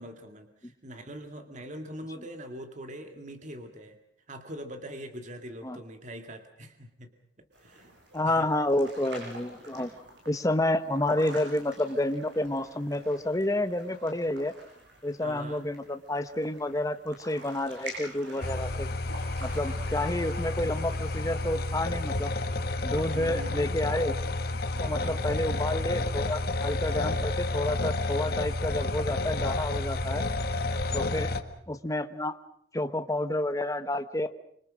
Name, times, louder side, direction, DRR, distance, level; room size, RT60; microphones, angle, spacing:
voice 1, 0.0-4.0 4.3-7.1 7.4-7.9 8.3-8.5 15.2-15.7 23.1-23.8 24.9-25.3 30.9-31.2, equal, 40° right, 6 dB, 2.2 m, -43 dB
sound 1, 7.5-22.2, right 1 dB, 70° right, 7.4 m, -47 dB
voice 2, 8.1-9.9 10.3-14.5 15.0-18.9 19.4-22.3 22.8-24.1 24.8-30.2 30.9-31.3 31.7-32.4 32.7-34.3, left 1 dB, 20° left, 9 dB, 1.1 m, -29 dB
sound 2, 18.4-31.4, left 2 dB, 55° left, 1.7 m, -30 dB
25.5 x 25.5 x 6.3 m, 0.66 s
head